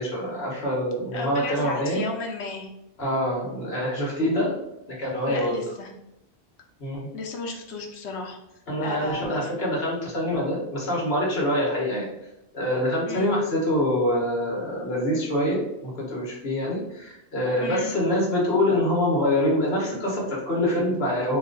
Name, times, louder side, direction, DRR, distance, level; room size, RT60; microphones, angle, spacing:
voice 1, 0.0-2.0 3.0-4.6 4.9-5.6 6.8-7.1 8.7-12.1 12.5-21.4, left 1 dB, 65° left, -4 dB, 1.5 m, -25 dB
voice 2, 1.1-2.7 5.3-5.9 7.1-9.5 13.1-13.3 17.6-18.0, left 3 dB, 80° left, 2 dB, 1.0 m, -34 dB
3.0 x 2.4 x 3.7 m, 0.86 s
omnidirectional pair, 1.1 m